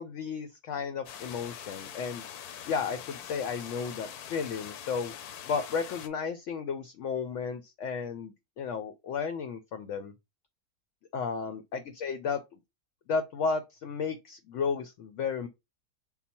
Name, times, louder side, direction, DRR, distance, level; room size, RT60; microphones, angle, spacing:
voice 1, 0.0-2.2 2.7-5.1 5.4-10.1 11.1-12.4 13.1-15.5, left 5 dB, 65° left, 0.8 m, -33 dB
sound 1, 1.1-6.1, left 9 dB, 80° left, 1.1 m, -43 dB
5.6 x 2.1 x 4.2 m
omnidirectional pair, 1.6 m